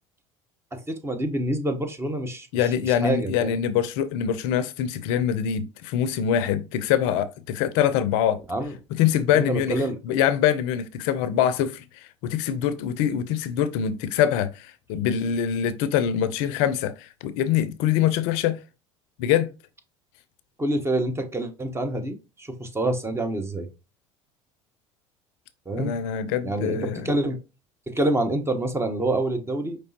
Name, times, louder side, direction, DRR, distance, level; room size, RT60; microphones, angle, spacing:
voice 1, 0.7-3.6 8.5-8.7 9.3-10.0 20.6-23.7 25.7-25.9 26.4-27.4 27.9-29.8, right 1 dB, 15° right, 1.0 m, -27 dB
voice 2, 2.5-8.4 8.9-18.6 19.2-19.5 25.8-27.0, left 9 dB, 65° left, 0.5 m, -24 dB
5.2 x 3.2 x 2.8 m
hypercardioid pair, 75°, 17 cm